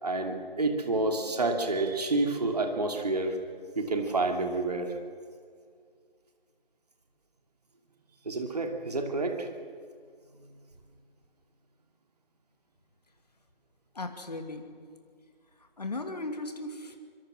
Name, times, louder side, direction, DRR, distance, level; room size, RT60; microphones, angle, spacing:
voice 1, 0.0-3.4 3.8-4.9 8.2-9.5, right 2 dB, 40° right, 4 dB, 3.0 m, -29 dB
voice 2, 13.9-14.8 15.8-17.0, left 2 dB, 45° left, 5 dB, 2.5 m, -37 dB
25.0 x 23.5 x 6.4 m, 2.1 s
figure-of-eight pair, 165°, 30 cm